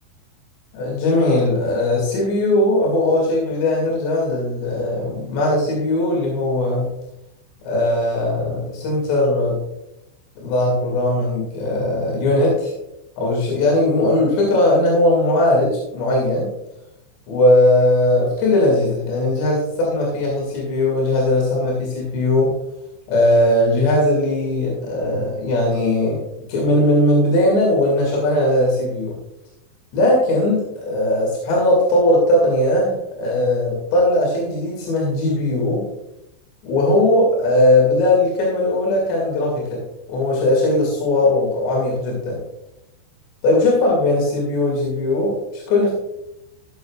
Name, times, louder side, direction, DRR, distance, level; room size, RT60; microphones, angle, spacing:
voice 1, 0.7-6.9 7.6-9.6 10.4-12.7 13.2-16.5 17.3-22.6 23.1-26.2 26.5-29.2 29.9-35.8 36.6-39.8 40.1-42.4 43.4-45.9, left 1 dB, 80° left, -3 dB, 4.7 m, -19 dB
16.5 x 6.9 x 2.4 m, 0.85 s
omnidirectional pair, 5.0 m